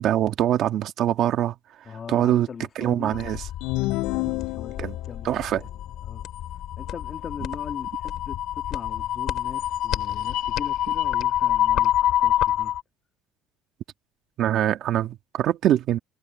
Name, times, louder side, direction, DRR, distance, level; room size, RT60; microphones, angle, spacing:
voice 1, 0.0-1.5 2.1-2.5 2.8-3.4 4.8-4.9 5.2-5.6 14.4-16.0, right 12 dB, 50° right, 1.8 m, -23 dB
voice 2, 1.8-3.1 4.1-5.7 6.0-6.3 6.8-11.9 12.2-12.7, left 6 dB, 30° left, 2.5 m, -40 dB
sound 1, 3.1-12.8, left 12 dB, 50° left, 1.1 m, -27 dB
sound 2, 3.6-5.2, left 21 dB, 70° left, 0.4 m, -28 dB
cardioid pair, 150°, 0 cm